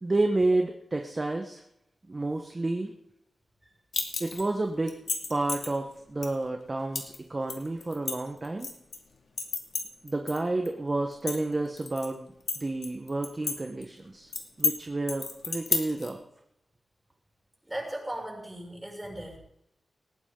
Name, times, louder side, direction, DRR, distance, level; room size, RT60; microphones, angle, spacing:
voice 1, 0.0-1.6 2.1-2.9 4.2-5.0 5.3-8.7 10.0-14.3 14.6-16.2, right 2 dB, 25° right, 4 dB, 1.1 m, -30 dB
sound 1, 3.9-4.5 4.9-5.7 6.2-6.3 7.0-7.2 7.5-9.0 9.4-10.4 10.7-10.8 11.1-12.1 12.5-13.6 13.8-13.9 14.3-14.8 15.1-16.1, left 4 dB, 75° left, 2.3 m, -31 dB
voice 2, 17.6-19.4, right 1 dB, 10° right, -1 dB, 6.8 m, -37 dB
19.5 x 15.5 x 3.8 m, 0.80 s
wide cardioid pair, 110°, 0 cm